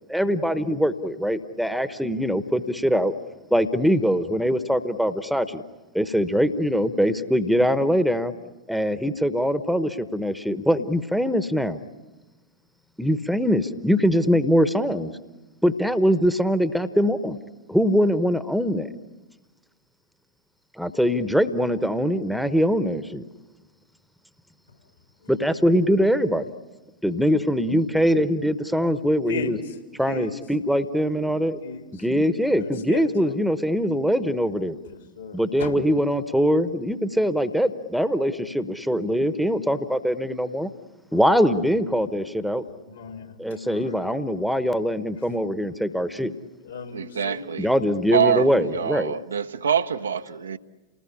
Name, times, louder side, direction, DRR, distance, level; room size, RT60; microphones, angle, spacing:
voice 1, 0.1-3.1 3.5-5.6 5.9-8.3 8.7-11.8 13.0-15.1 15.6-17.4 17.7-18.9 20.8-23.2 25.3-26.5 27.0-29.6 30.0-31.6 32.0-34.8 35.3-40.7 41.1-42.6 43.4-46.3 47.6-49.1, equal, ahead, 1.1 m, -22 dB
voice 2, 29.3-29.7 30.1-30.4 31.6-31.8 32.6-33.3 34.9-35.8 41.1-41.2 42.9-43.3 43.6-44.1 46.6-47.6, left 3 dB, 70° left, 3.5 m, -35 dB
voice 3, 46.9-47.7 48.1-50.6, right 7 dB, 70° right, 0.9 m, -25 dB
29.0 x 20.0 x 10.0 m
figure-of-eight pair, 90°, 0 cm